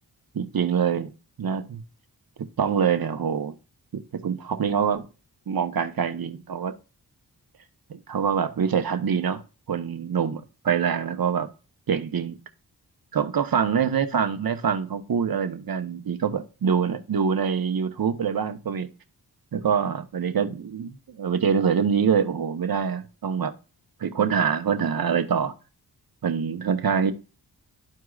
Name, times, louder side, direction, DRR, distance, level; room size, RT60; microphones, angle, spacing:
voice 1, 0.3-1.1 1.4-1.8 2.6-3.5 3.9-5.0 5.5-6.7 7.9-9.4 9.7-11.5 11.9-12.4 13.1-18.9 19.5-23.5 24.0-25.5 26.2-27.1, right 7 dB, 60° right, 1.0 m, -25 dB
12.5 x 4.6 x 2.4 m
cardioid pair, 65°, 40 cm